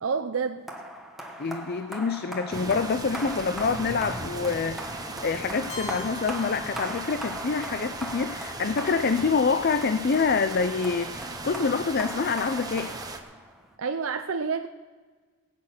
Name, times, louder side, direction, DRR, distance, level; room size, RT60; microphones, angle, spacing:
voice 1, 0.0-0.7 13.8-14.7, right 5 dB, 70° right, 7 dB, 0.6 m, -28 dB
sound 1, 0.7-13.7, right 1 dB, ahead, 1.2 m, -39 dB
voice 2, 1.4-12.9, left 5 dB, 45° left, 11 dB, 0.5 m, -26 dB
sound 2, 2.5-13.2, right 3 dB, 15° right, 0.9 m, -38 dB
Keyboard (musical), 5.7-7.6, left 3 dB, 75° left, 3.8 m, -42 dB
20.5 x 8.8 x 6.0 m, 1.4 s
head